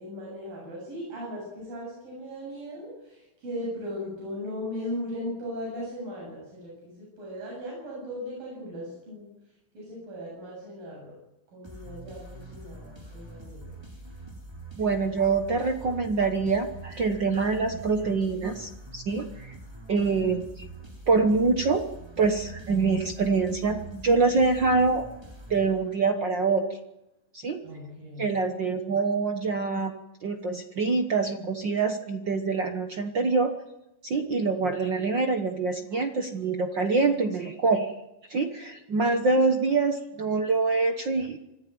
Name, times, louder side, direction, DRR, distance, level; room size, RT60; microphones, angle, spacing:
voice 1, 0.0-9.3 9.7-11.1 11.5-13.7 27.6-28.4, left 1 dB, 85° right, -3 dB, 9.6 m, -38 dB
sound 1, 11.6-26.2, right 2 dB, 10° right, 3.0 m, -44 dB
voice 2, 14.8-19.5 19.9-20.7 21.1-21.8 22.2-25.0 25.5-26.6 27.3-27.6 28.2-29.9 30.2-33.5 34.0-37.9 38.3-41.4, right 4 dB, 55° right, 6 dB, 1.2 m, -25 dB
25.5 x 14.5 x 9.5 m, 0.95 s
omnidirectional pair, 3.9 m